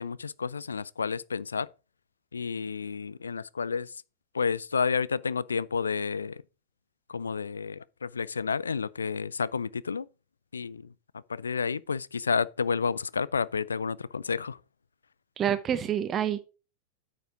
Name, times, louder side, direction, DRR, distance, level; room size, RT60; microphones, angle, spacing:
voice 1, 0.0-1.7 2.3-4.0 4.3-6.4 7.1-10.1 10.5-10.9 11.3-14.6, left 5 dB, 75° left, 0.3 m, -30 dB
voice 2, 15.4-16.4, right 9 dB, 25° right, 1.0 m, -27 dB
8.9 x 5.3 x 4.8 m
figure-of-eight pair, 90°, 0 cm